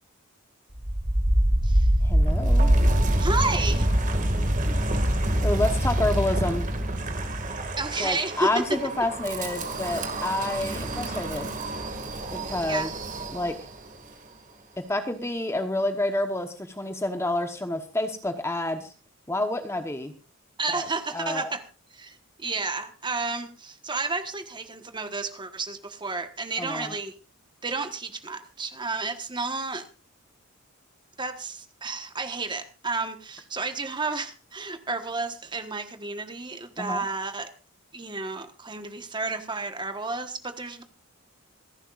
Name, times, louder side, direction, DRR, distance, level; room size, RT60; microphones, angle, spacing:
Wind, 0.7-13.8, right 1 dB, 35° right, 2.1 m, -25 dB
voice 1, 2.0-2.7 5.4-6.7 8.0-11.6 12.3-12.9 13.3-13.6 14.8-18.9 19.3-20.1 20.7-21.5 26.6-27.0 36.8-37.0, left 1 dB, 10° left, 7 dB, 1.0 m, -29 dB
voice 2, 3.1-3.9 7.8-8.6 12.7-12.9 20.6-21.6 22.0-27.1 27.6-29.9 31.2-37.5 37.9-40.8, right 3 dB, 20° right, 8 dB, 1.3 m, -31 dB
27.0 x 11.0 x 2.5 m, 0.31 s
head